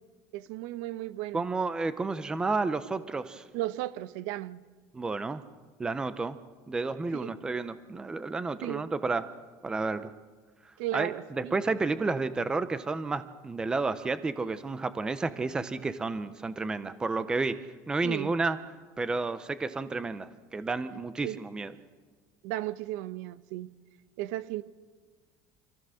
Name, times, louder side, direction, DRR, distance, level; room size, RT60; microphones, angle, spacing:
voice 1, 0.3-1.4 3.5-4.6 7.2-7.3 8.6-8.8 10.8-11.5 18.0-18.4 21.2-21.4 22.4-23.7 24.2-24.6, right 15 dB, 70° right, 15 dB, 0.9 m, -35 dB
voice 2, 1.3-3.4 4.9-5.4 5.8-6.4 6.7-9.3 9.6-10.1 10.9-17.6 17.9-18.6 19.0-21.7, right 3 dB, 10° right, 13 dB, 0.6 m, -31 dB
27.0 x 15.0 x 6.4 m, 1.4 s
cardioid pair, 180°, 8 cm